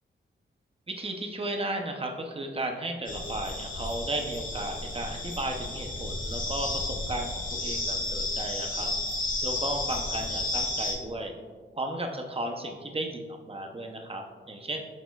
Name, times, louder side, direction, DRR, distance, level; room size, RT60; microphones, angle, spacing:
voice 1, 0.9-8.9 9.4-11.3 11.8-14.8, right 1 dB, 30° right, 3 dB, 0.7 m, -34 dB
sound 1, 3.1-10.9, left 2 dB, 40° left, 1.4 m, -32 dB
8.4 x 6.4 x 2.4 m, 1.5 s
wide cardioid pair, 130°, 20 cm